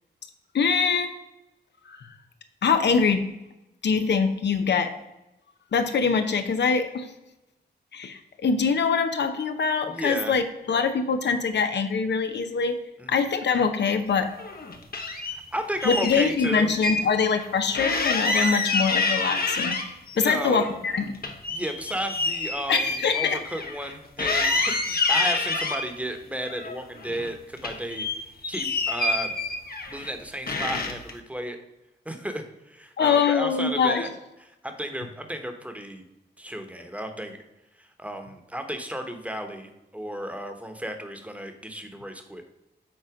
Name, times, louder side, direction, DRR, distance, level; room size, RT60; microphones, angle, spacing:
voice 1, 0.5-1.2 1.9-2.1 2.6-3.2 3.8-4.9 5.7-7.1 7.9-12.8 13.1-14.3 15.8-19.8 20.2-21.1 22.7-23.4 33.0-34.1, left 5 dB, 80° left, 8 dB, 0.8 m, -23 dB
voice 2, 9.8-10.4 13.0-13.2 15.2-16.7 20.1-20.7 21.5-28.1 28.5-29.3 29.9-31.6 32.0-34.1 34.4-36.0 36.4-37.4 37.8-42.5, right 1 dB, 10° right, 6 dB, 1.1 m, -33 dB
sound 1, 14.3-15.4 15.8-17.0 17.3-17.5 17.7-20.2 20.5-23.9 24.2-25.9 26.4-27.3 27.6-30.1 30.5-31.1, left 3 dB, 60° left, 1.1 m, -27 dB
7.7 x 4.4 x 5.0 m, 0.94 s
cardioid pair, 70°, 18 cm